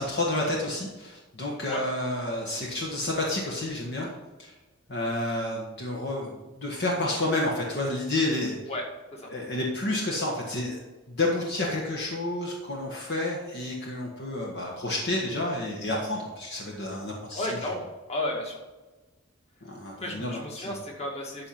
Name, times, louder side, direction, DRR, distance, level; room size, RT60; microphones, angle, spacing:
voice 1, 0.0-4.1 4.4-4.5 4.9-8.6 9.3-10.8 11.1-17.5 19.6-20.7, left 2 dB, 55° left, -2 dB, 1.5 m, -30 dB
voice 2, 17.3-18.6 20.0-21.5, left 1 dB, 30° left, -1 dB, 2.1 m, -33 dB
12.5 x 4.5 x 5.5 m, 1.1 s
head